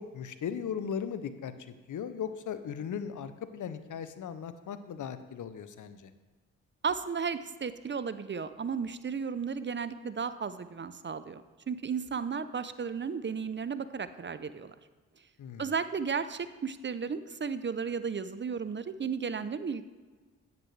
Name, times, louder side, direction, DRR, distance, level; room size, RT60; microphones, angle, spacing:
voice 1, 0.0-1.5 1.9-6.1 15.4-15.7, left 7 dB, 60° left, 11 dB, 0.8 m, -37 dB
voice 2, 6.8-14.7 15.6-19.8, right 6 dB, 35° right, 13 dB, 0.6 m, -34 dB
9.6 x 9.5 x 3.3 m, 1.3 s
supercardioid pair, 40°, 33 cm